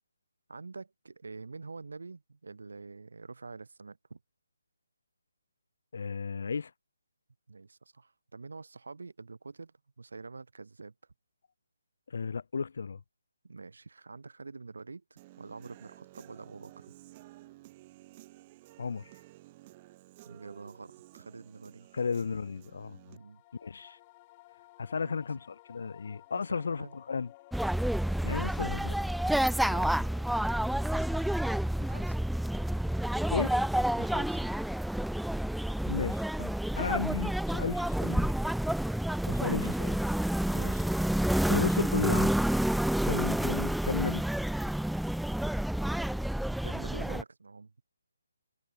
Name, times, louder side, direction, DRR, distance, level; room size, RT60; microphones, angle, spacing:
voice 1, 0.5-4.2 7.5-10.9 13.4-16.9 20.2-21.9 23.1-23.4 25.0-25.2 26.3-27.0 29.7-30.1 30.9-31.3 31.8-32.2 34.0-34.5 39.6-39.7 40.5-40.9 43.1-43.5 46.6-47.7, right 4 dB, 70° right, 2.6 m, -46 dB
voice 2, 5.9-6.7 12.1-13.0 18.8-19.1 21.9-23.0 23.6-24.0 24.8-25.4 25.7-27.3 28.2-28.9 33.3-33.6 35.9-38.3 39.3-39.9 41.5-42.3 43.0-44.2, left 5 dB, 60° left, 0.7 m, -34 dB
Human voice / Guitar, 15.2-23.2, right 18 dB, 25° right, 2.1 m, -54 dB
sound 1, 23.0-31.1, left 21 dB, 25° left, 2.4 m, -56 dB
sound 2, 27.5-47.2, right 1 dB, ahead, 0.3 m, -29 dB
figure-of-eight pair, 150°, 0 cm